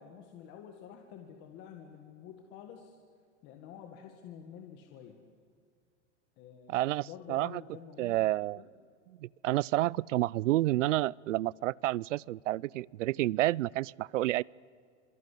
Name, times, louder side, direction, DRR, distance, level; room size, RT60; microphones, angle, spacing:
voice 1, 0.0-3.0 3.4-5.2 6.4-8.2 8.6-8.7, left 8 dB, 30° left, 4 dB, 1.8 m, -49 dB
voice 2, 6.7-7.6 8.0-8.6 9.1-14.4, right 16 dB, 90° right, 27 dB, 0.6 m, -30 dB
27.0 x 24.0 x 8.4 m, 2.2 s
supercardioid pair, 170°, 36 cm